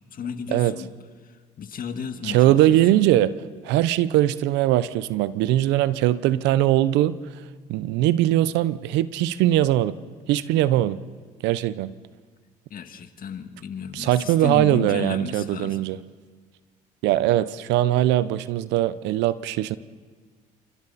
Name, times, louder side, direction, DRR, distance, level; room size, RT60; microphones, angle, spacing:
voice 1, 0.1-0.9 1.2-2.8 12.7-15.9, left 7 dB, 50° left, 7 dB, 2.0 m, -33 dB
voice 2, 2.2-3.3 3.6-7.1 7.7-9.9 10.3-11.0 11.4-11.9 13.9-16.0 17.0-19.8, right 14 dB, 75° right, 16 dB, 0.8 m, -21 dB
28.5 x 26.5 x 4.3 m, 1.5 s
hypercardioid pair, 60°, 18 cm